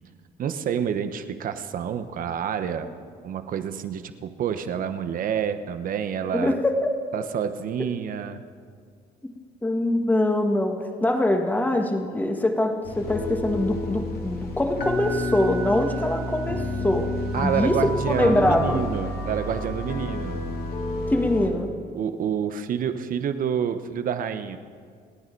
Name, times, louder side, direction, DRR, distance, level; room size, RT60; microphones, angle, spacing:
voice 1, 0.4-2.9 3.2-6.6 7.1-8.4 17.3-20.4 21.9-24.6, right 8 dB, 55° right, 10 dB, 1.0 m, -28 dB
voice 2, 6.2-6.9 9.6-17.1 17.4-18.8 19.9-20.0 21.1-21.7, left 1 dB, 10° left, 4 dB, 1.6 m, -23 dB
sound 1, 12.8-21.5, left 1 dB, 65° left, 2.6 m, -30 dB
28.5 x 9.5 x 4.7 m, 2.1 s
cardioid pair, 110°, 17 cm